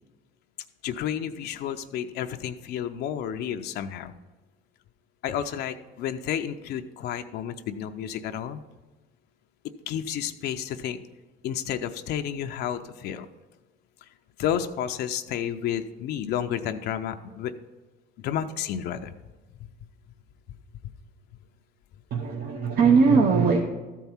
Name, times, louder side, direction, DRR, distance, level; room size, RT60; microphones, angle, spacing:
voice 1, 0.8-4.1 5.2-8.6 9.9-11.0 11.4-13.3 14.4-17.5 18.2-19.1 19.6-19.7, left 9 dB, 75° left, 6 dB, 0.5 m, -31 dB
voice 2, 22.1-23.6, right 5 dB, 65° right, 2 dB, 0.9 m, -20 dB
13.5 x 4.6 x 5.6 m, 1.2 s
cardioid pair, 110°, 17 cm